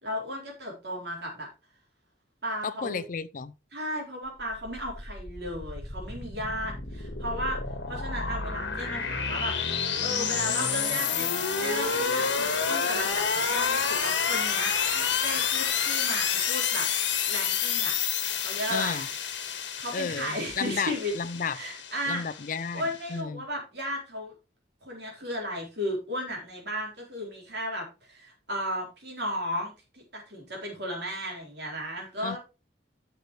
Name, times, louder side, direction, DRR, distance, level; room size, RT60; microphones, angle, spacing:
voice 1, 0.0-1.5 2.4-3.0 3.7-7.6 7.9-9.6 10.0-11.3 11.6-16.9 17.3-17.9 18.4-19.4 19.8-21.1 21.5-22.4 22.7-24.3 24.8-32.4, equal, 65° right, 4.0 m, -34 dB
voice 2, 2.6-3.5 18.7-19.1 19.9-21.6 22.1-22.8 23.1-23.5 32.2-32.4, left 5 dB, 45° left, 0.4 m, -32 dB
sound 1, 4.4-23.1, left 6 dB, 80° left, 1.6 m, -29 dB
10.5 x 6.6 x 3.2 m
head